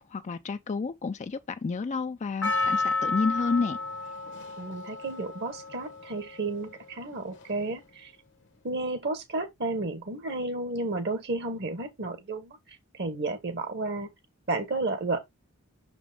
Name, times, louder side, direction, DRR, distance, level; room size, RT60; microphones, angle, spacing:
voice 1, 0.0-3.8, left 4 dB, 35° left, 0.3 m, -30 dB
Percussion, 2.4-6.8 7.4-7.5, left 3 dB, 60° left, 0.9 m, -31 dB
voice 2, 4.6-8.1 8.6-12.6 12.9-14.1 14.5-15.2, right 2 dB, 50° right, 1.2 m, -32 dB
6.0 x 5.1 x 3.4 m
head